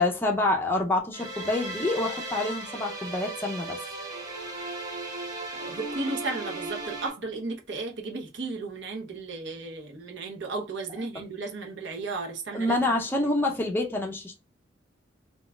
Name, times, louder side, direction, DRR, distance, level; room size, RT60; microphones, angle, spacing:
voice 1, 0.0-3.8 12.5-14.4, left 2 dB, 10° left, 0.5 m, -27 dB
sound 1, 1.1-7.1, right 2 dB, 20° right, 1.5 m, -36 dB
voice 2, 5.5-12.8, right 3 dB, 60° right, 0.8 m, -34 dB
3.9 x 2.3 x 2.2 m
head